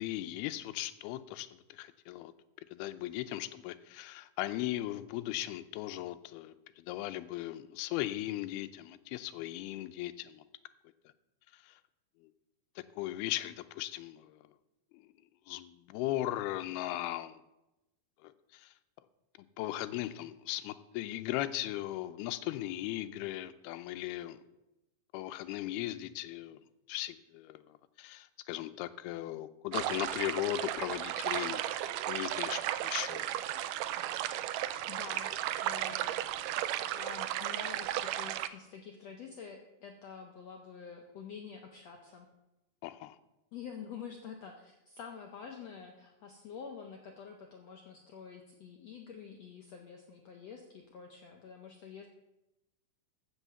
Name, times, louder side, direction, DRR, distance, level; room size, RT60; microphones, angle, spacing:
voice 1, 0.0-2.3 2.7-10.4 11.6-11.7 12.8-14.4 15.5-17.4 18.2-18.7 19.6-24.4 25.1-26.6 26.9-27.6 28.0-31.6 32.1-33.3 42.8-43.2, left 15 dB, 90° left, 11 dB, 2.6 m, -37 dB
sound 1, 29.7-38.5, right 13 dB, 90° right, 1.9 m, -35 dB
voice 2, 34.9-35.3 35.6-36.1 36.9-42.3 43.5-52.1, left 6 dB, 70° left, 2 dB, 1.6 m, -47 dB
14.5 x 6.3 x 6.9 m, 0.95 s
omnidirectional pair, 4.4 m